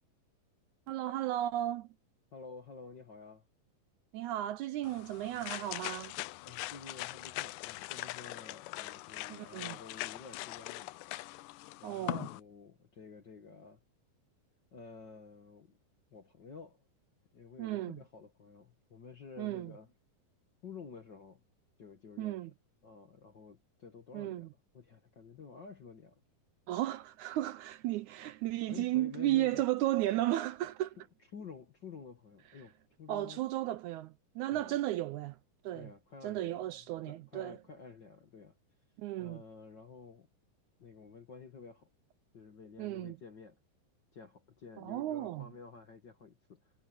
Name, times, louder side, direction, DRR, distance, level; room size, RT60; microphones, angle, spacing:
voice 1, 0.9-1.9 4.1-6.2 9.3-9.8 11.8-12.3 17.6-18.0 19.4-19.7 22.2-22.5 24.1-24.5 26.7-31.0 33.1-35.4 35.6-35.9 36.2-37.6 39.0-39.4 42.8-43.2 44.8-45.5, right 14 dB, 80° right, 1.7 m, -34 dB
voice 2, 2.3-3.4 6.4-10.9 11.8-13.8 14.7-15.8 16.1-16.8 17.3-19.9 20.6-21.4 21.8-22.4 22.8-24.5 24.7-26.2 28.7-29.7 31.3-33.4 34.5-34.8 35.7-36.7 37.1-38.6 39.2-40.3 40.8-41.9 42.3-43.6 44.1-46.7, left 5 dB, 45° left, 1.5 m, -51 dB
sound 1, 4.8-12.4, left 19 dB, 80° left, 2.0 m, -42 dB
omnidirectional pair, 4.1 m